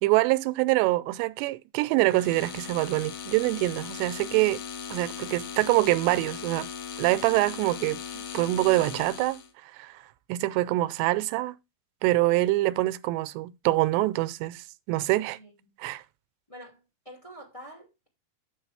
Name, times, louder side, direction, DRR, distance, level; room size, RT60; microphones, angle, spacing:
voice 1, 0.0-4.6 4.9-6.7 7.0-10.0 10.3-11.6 12.0-15.4 15.8-16.0, right 19 dB, 90° right, 2.8 m, -25 dB
sound 1, 2.0-9.5, left 7 dB, 65° left, 2.2 m, -38 dB
voice 2, 5.2-5.6 15.3-15.7 16.5-18.1, equal, 20° left, 1.0 m, -48 dB
8.8 x 6.9 x 3.3 m
omnidirectional pair, 4.9 m